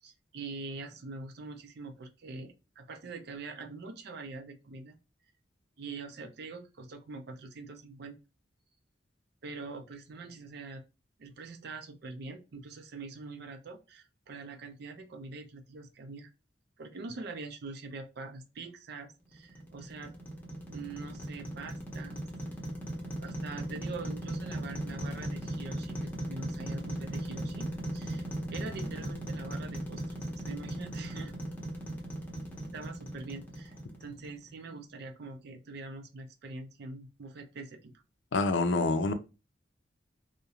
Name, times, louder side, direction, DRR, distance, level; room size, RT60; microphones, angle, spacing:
voice 1, 0.0-5.0 5.8-8.2 9.4-10.8 11.2-16.3 16.8-20.1 20.7-22.2 23.2-27.7 27.9-28.2 28.5-30.0 30.3-31.4 32.7-37.9, right 3 dB, 60° right, 0.4 m, -44 dB
sound 1, 19.3-34.5, right 1 dB, 10° left, 0.6 m, -38 dB
voice 2, 38.3-39.1, left 3 dB, 80° left, 0.4 m, -26 dB
2.4 x 2.1 x 2.8 m
head